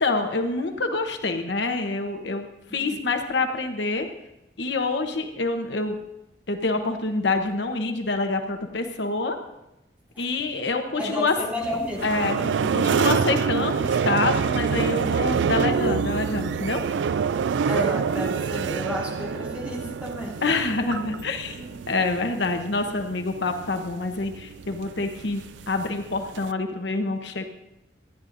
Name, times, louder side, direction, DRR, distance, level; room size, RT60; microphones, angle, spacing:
voice 1, 0.0-2.5 2.7-4.1 4.6-6.0 6.5-9.4 10.2-11.3 12.0-16.8 20.4-21.6 21.9-27.4, left 3 dB, 75° left, 5 dB, 1.0 m, -26 dB
voice 2, 2.7-3.1 11.0-12.3 17.7-20.4 21.5-21.7, left 1 dB, 10° right, -5 dB, 2.5 m, -31 dB
sound 1, 11.6-26.5, right 6 dB, 75° right, 0.3 m, -27 dB
26.5 x 10.0 x 2.6 m, 0.91 s
head